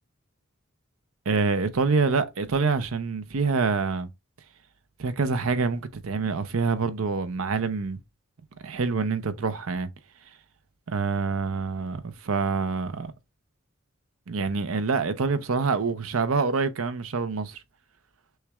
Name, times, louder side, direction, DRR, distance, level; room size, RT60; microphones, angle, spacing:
voice 1, 1.3-4.1 5.0-8.0 8.6-9.9 10.9-13.1 14.3-17.6, right 4 dB, 90° right, 0.7 m, -26 dB
6.4 x 2.4 x 3.0 m
head